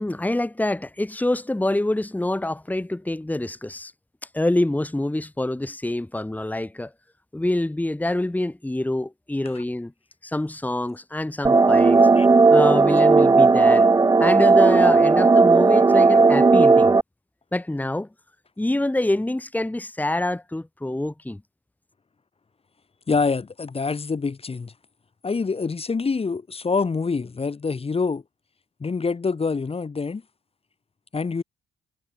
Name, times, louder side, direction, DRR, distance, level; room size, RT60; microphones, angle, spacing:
voice 1, 0.0-3.9 4.3-6.9 7.3-9.9 10.2-12.0 12.5-13.9 14.2-16.9 17.5-18.1 18.6-21.4, left 1 dB, 10° left, 2.1 m, -26 dB
sound 1, 11.4-17.0, right 4 dB, 15° right, 0.5 m, -15 dB
voice 2, 23.1-24.7 25.2-28.2 28.8-30.2 31.1-31.4, left 4 dB, 30° left, 2.2 m, -25 dB
cardioid pair, 90°, 20 cm